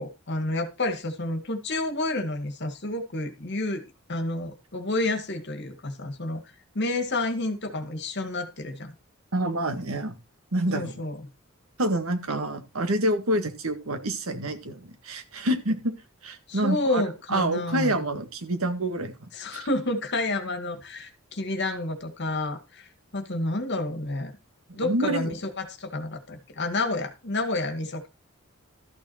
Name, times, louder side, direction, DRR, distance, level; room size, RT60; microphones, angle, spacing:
voice 1, 0.0-6.4 6.7-8.9 10.7-11.2 16.5-18.0 19.3-24.3 24.7-28.1, left 2 dB, 55° left, 7 dB, 2.0 m, -30 dB
voice 2, 9.3-10.1 10.5-10.9 11.8-15.9 16.2-17.0 17.3-19.7 24.8-25.3, right 1 dB, 85° right, 8 dB, 1.8 m, -27 dB
13.5 x 6.3 x 4.3 m, 0.27 s
head